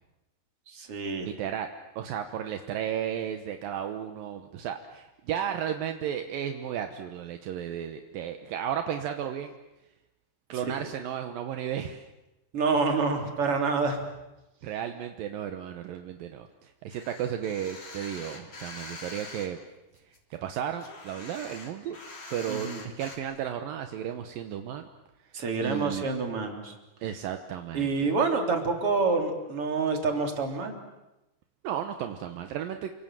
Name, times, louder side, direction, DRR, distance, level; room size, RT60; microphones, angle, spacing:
voice 1, 0.7-1.3 12.5-14.0 22.5-22.8 25.3-26.7 27.7-30.8, right 4 dB, 30° right, 4 dB, 3.6 m, -27 dB
voice 2, 1.2-1.7 2.0-9.5 10.5-12.1 14.6-19.6 20.3-22.0 22.3-24.9 25.6-26.1 27.0-28.1 31.6-32.9, right 9 dB, 70° right, 7 dB, 2.2 m, -34 dB
sound 1, 16.9-19.5 20.0-23.2, left 3 dB, 35° left, 3.8 m, -44 dB
29.0 x 25.0 x 7.5 m, 0.96 s
omnidirectional pair, 5.5 m